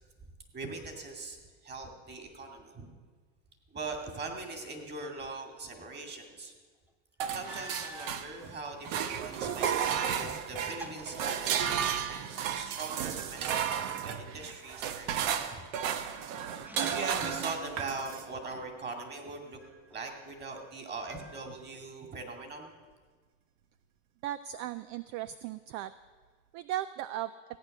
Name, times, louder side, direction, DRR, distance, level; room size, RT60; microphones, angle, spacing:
voice 1, 0.5-1.4 1.6-2.9 3.7-6.5 7.3-11.9 12.5-13.6 14.0-15.6 16.5-19.6 19.9-22.7, right 3 dB, 25° right, 3 dB, 2.5 m, -41 dB
Opening and closing a small metal hatch, 6.9-7.0 7.4-8.2 9.0-10.2 10.5-12.0 16.6-17.3 17.9-18.9 19.6-20.4 21.1-21.8, equal, 5° right, 0.7 m, -48 dB
sound 1, 7.2-8.5 8.8-18.3, right 8 dB, 75° right, 1.1 m, -33 dB
voice 2, 24.2-25.9 26.5-27.3, right 12 dB, 50° right, 15 dB, 0.5 m, -36 dB
15.5 x 9.1 x 6.6 m, 1.4 s
supercardioid pair, 110°, 39 cm